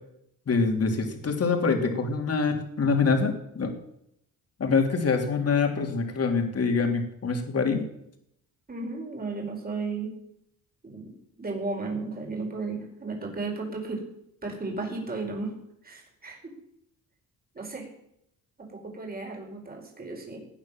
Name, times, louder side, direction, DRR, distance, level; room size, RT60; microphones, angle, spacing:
voice 1, 0.5-3.7 4.6-7.8, left 4 dB, 45° left, 3 dB, 3.4 m, -25 dB
voice 2, 8.7-10.1 10.8-14.0 14.4-15.5 15.8-16.5 17.5-17.9 18.6-20.4, right 3 dB, 25° right, 1 dB, 4.8 m, -34 dB
19.0 x 9.4 x 7.4 m, 0.77 s
cardioid pair, 105°, 35 cm